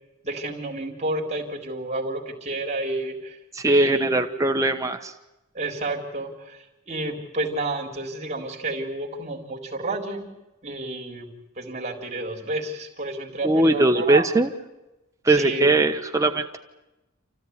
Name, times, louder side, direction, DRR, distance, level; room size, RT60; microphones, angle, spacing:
voice 1, 0.2-3.4 3.7-4.3 5.5-10.3 10.6-11.3 11.6-14.2 15.3-15.7, right 2 dB, 30° right, 0 dB, 3.9 m, -30 dB
voice 2, 3.5-5.1 13.4-14.5 15.2-16.6, right 2 dB, 15° right, 5 dB, 1.2 m, -20 dB
29.0 x 15.0 x 9.6 m, 0.98 s
head